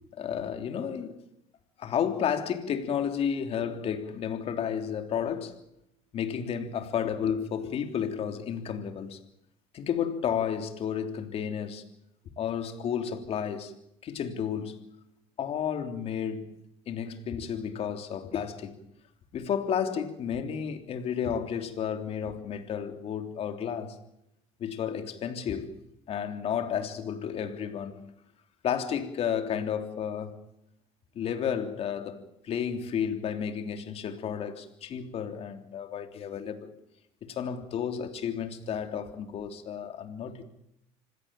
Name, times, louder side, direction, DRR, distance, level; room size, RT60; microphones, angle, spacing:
voice 1, 0.2-1.2 1.8-5.6 6.1-9.2 9.7-11.8 12.4-13.7 14.0-14.8 15.4-16.5 16.9-18.8 19.3-24.0 24.6-25.8 26.1-28.0 28.6-30.4 31.1-36.7 37.2-40.4, left 8 dB, 50° left, 3.3 m, -32 dB
26.0 x 17.0 x 9.0 m
cardioid pair, 110°, 13 cm